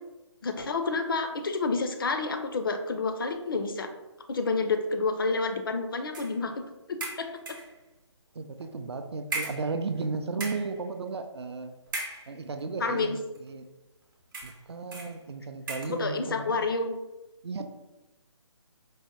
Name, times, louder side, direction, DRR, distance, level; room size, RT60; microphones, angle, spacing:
voice 1, 0.4-3.9 4.3-6.6 6.9-7.6 12.8-13.2 15.9-16.9, left 3 dB, 50° left, 6 dB, 0.4 m, -29 dB
sound 1, 6.1-6.4 7.0-7.8 8.6-8.7 9.3-10.1 10.3-10.8 11.9-12.6 13.4-13.5 14.3-14.6 14.9-15.2 15.7-16.0, right 2 dB, 45° right, 0.8 m, -37 dB
voice 2, 8.4-11.7 12.3-13.7 14.4-16.7 17.4-17.6, right 4 dB, 60° right, 8 dB, 0.4 m, -34 dB
4.5 x 2.1 x 2.9 m, 1.0 s
figure-of-eight pair, 150°, 15 cm